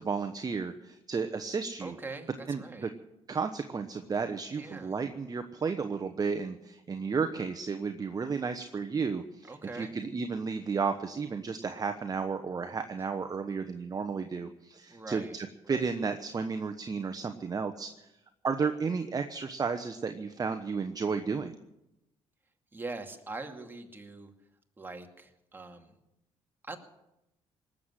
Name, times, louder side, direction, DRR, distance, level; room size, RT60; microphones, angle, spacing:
voice 1, 0.0-1.9 2.5-2.9 3.3-18.1 18.4-21.6, right 5 dB, 35° right, 7 dB, 1.1 m, -33 dB
voice 2, 1.8-2.9 4.6-5.0 9.5-10.0 14.9-15.4 15.6-15.9 22.7-24.3 24.8-26.0 26.6-26.8, right 3 dB, 15° right, 4 dB, 2.3 m, -42 dB
19.0 x 7.7 x 9.8 m, 0.90 s
cardioid pair, 80°, 12 cm